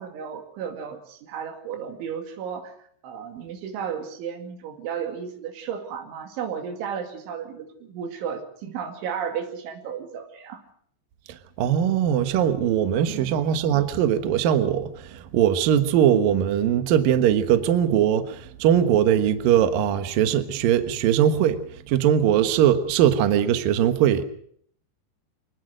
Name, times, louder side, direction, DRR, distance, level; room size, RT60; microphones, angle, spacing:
voice 1, 0.0-2.7 3.0-10.6 13.1-13.4, right 7 dB, 85° right, 4.8 m, -33 dB
voice 2, 11.3-21.6 21.9-24.2, right 10 dB, 65° right, 2.6 m, -21 dB
25.0 x 19.5 x 6.5 m
omnidirectional pair, 5.3 m